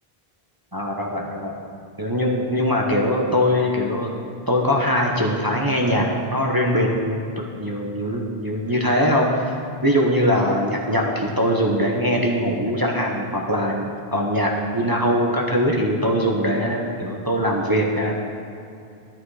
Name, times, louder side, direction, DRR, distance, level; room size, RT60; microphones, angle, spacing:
voice 1, 0.7-1.6 2.0-4.1 4.5-7.3 7.6-9.5 9.8-18.2, equal, 20° right, -1 dB, 0.9 m, -22 dB
11.0 x 10.5 x 4.9 m, 2.6 s
omnidirectional pair, 1.0 m